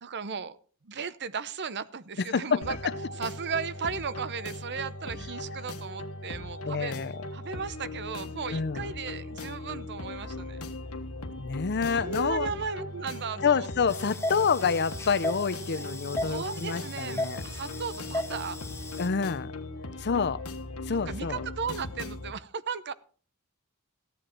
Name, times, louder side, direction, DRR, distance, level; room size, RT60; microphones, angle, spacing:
voice 1, 0.0-0.6 0.8-2.8 3.2-6.9 7.3-10.6 11.9-13.7 15.7-15.9 16.2-18.6 20.9-22.9, right 6 dB, 50° right, 15 dB, 0.7 m, -36 dB
voice 2, 2.3-2.9 6.7-7.1 8.5-8.9 11.4-12.5 13.4-17.4 19.0-19.5 20.0-20.4 20.9-21.4, left 5 dB, 50° left, 16 dB, 0.6 m, -28 dB
sound 1, 2.6-22.3, left 2 dB, 70° left, 1.5 m, -39 dB
sound 2, 13.9-19.1, left 1 dB, 10° left, 1.8 m, -36 dB
15.0 x 10.5 x 4.5 m, 0.43 s
head